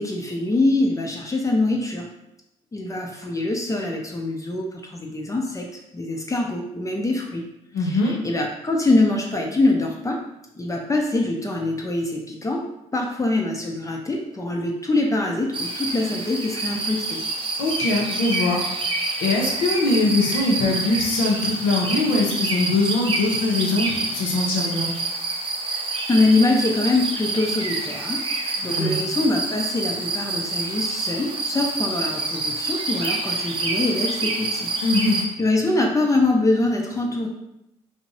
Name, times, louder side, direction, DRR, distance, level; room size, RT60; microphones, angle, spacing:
voice 1, 0.0-2.1 2.7-7.4 7.8-10.2 10.6-12.6 12.9-17.2 26.1-34.7 35.4-37.3, left 2 dB, 25° left, 0 dB, 0.5 m, -24 dB
voice 2, 7.7-8.2 17.6-18.6 19.2-24.9 28.6-29.0 34.8-35.2, left 2 dB, 90° left, -1 dB, 0.5 m, -22 dB
sound 1, 15.5-35.2, right 3 dB, 40° right, 0.5 m, -27 dB
2.6 x 2.0 x 2.6 m, 0.84 s
hypercardioid pair, 50°, 14 cm